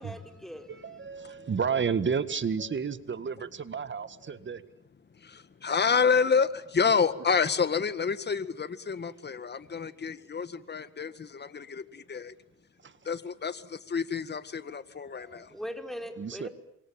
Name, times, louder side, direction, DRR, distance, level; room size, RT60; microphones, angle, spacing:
voice 1, 0.0-0.7 15.1-16.5, equal, ahead, 6 dB, 4.5 m, -40 dB
voice 2, 0.7-4.6 12.8-13.1 15.3-15.4 16.2-16.5, right 6 dB, 40° right, 13 dB, 1.9 m, -31 dB
voice 3, 5.2-12.3 13.1-15.5, left 5 dB, 35° left, 13 dB, 1.9 m, -28 dB
27.5 x 23.5 x 8.9 m, 0.75 s
cardioid pair, 90°, 30 cm